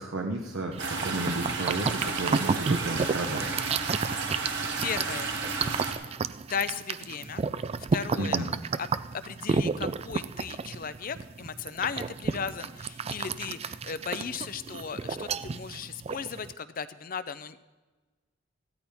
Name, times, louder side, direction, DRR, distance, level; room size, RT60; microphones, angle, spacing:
voice 1, 0.0-3.5 8.2-8.5, right 2 dB, 75° right, 1 dB, 1.0 m, -33 dB
sound 1, 0.7-16.5, right 5 dB, 30° right, 0.3 m, -32 dB
sound 2, 0.8-5.9, right 4 dB, 60° right, 1.8 m, -32 dB
voice 2, 4.8-5.3 6.5-7.4 7.9-8.5 8.8-8.9 9.2-17.6, left 6 dB, 45° left, 13 dB, 0.5 m, -36 dB
15.0 x 13.0 x 3.5 m, 1.2 s
head